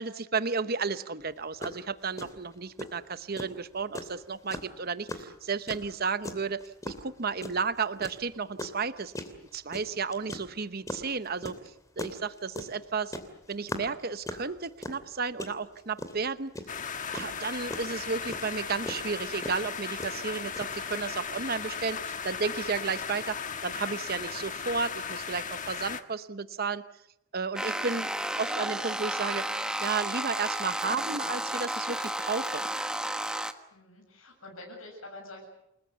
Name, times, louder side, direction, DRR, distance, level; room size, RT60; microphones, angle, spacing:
voice 1, 0.0-9.1 9.5-11.6 12.0-13.1 13.5-16.5 17.1-23.4 23.6-26.8 27.3-28.1 28.4-29.5 29.8-32.6, right 5 dB, 50° right, 12 dB, 0.9 m, -33 dB
sound 1, 1.2-1.3 1.6-1.8 2.2-21.0, left 1 dB, 15° left, 2.7 m, -39 dB
sound 2, 16.7-26.0, left 6 dB, 40° left, 1.5 m, -36 dB
sound 3, 27.6-33.5, right 1 dB, 5° right, 1.3 m, -32 dB
voice 2, 27.8-28.1 33.7-35.4, left 2 dB, 85° left, -1 dB, 7.7 m, -47 dB
29.0 x 20.0 x 8.2 m, 0.82 s
head